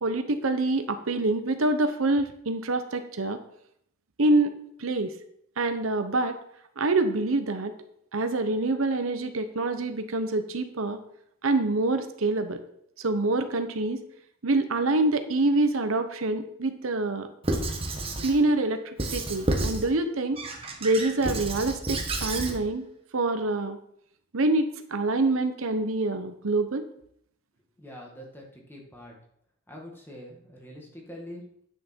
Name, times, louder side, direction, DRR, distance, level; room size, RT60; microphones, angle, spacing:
voice 1, 0.0-3.4 4.2-4.5 4.8-5.1 5.6-6.4 6.8-7.7 8.1-11.0 11.4-12.6 13.0-14.0 14.4-17.3 18.2-20.4 20.8-22.9 23.1-23.8 24.3-26.8, right 2 dB, 90° right, 8 dB, 0.9 m, -26 dB
Squeak / Writing, 17.4-18.4 19.0-19.9 20.4-22.6, right 2 dB, 30° right, 1.2 m, -30 dB
voice 2, 27.8-29.2 29.7-31.7, equal, 10° left, -1 dB, 1.8 m, -44 dB
9.4 x 6.6 x 4.5 m, 0.70 s
head